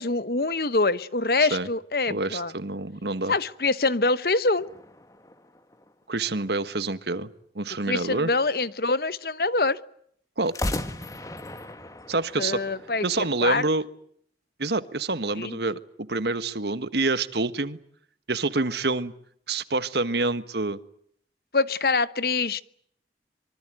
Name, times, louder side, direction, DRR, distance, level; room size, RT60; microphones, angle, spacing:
voice 1, 0.0-2.5 3.3-4.7 7.9-9.8 12.4-13.6 15.3-15.6 21.5-22.6, left 3 dB, 55° left, 1.1 m, -25 dB
voice 2, 2.1-3.3 6.1-7.3 7.5-8.3 10.4-10.5 12.1-12.6 13.0-13.8 14.6-17.8 18.3-19.1 19.5-20.8, right 3 dB, 70° right, 1.5 m, -27 dB
sound 1, 4.6-6.4 10.4-13.5, left 1 dB, 20° left, 1.6 m, -36 dB
25.5 x 24.0 x 9.1 m
head